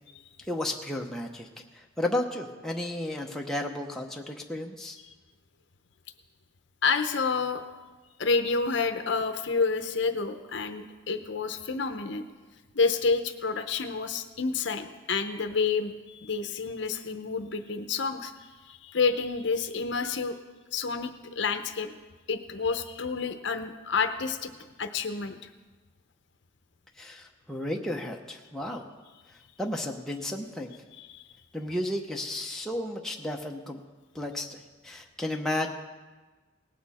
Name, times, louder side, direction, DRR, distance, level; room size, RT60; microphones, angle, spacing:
voice 1, 0.4-1.5 1.7-5.0 27.0-28.9 29.6-30.7 31.5-33.8 34.1-35.7, left 1 dB, ahead, 0 dB, 0.8 m, -33 dB
voice 2, 6.8-7.6 8.2-12.2 12.7-20.4 20.7-21.9 22.3-24.5 24.8-25.5 31.0-31.2, left 4 dB, 60° left, 8 dB, 0.7 m, -29 dB
18.5 x 8.4 x 4.2 m, 1.3 s
head